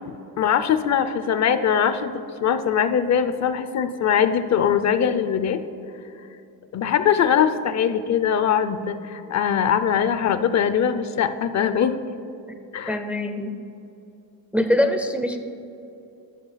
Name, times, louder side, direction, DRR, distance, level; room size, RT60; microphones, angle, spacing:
voice 1, 0.4-5.6 6.7-12.0 12.7-13.0, left 8 dB, 45° left, 11 dB, 0.5 m, -21 dB
voice 2, 12.9-13.5 14.5-15.4, left 1 dB, 5° right, 6 dB, 0.4 m, -23 dB
11.5 x 6.8 x 5.7 m, 2.8 s
cardioid pair, 155°, 37 cm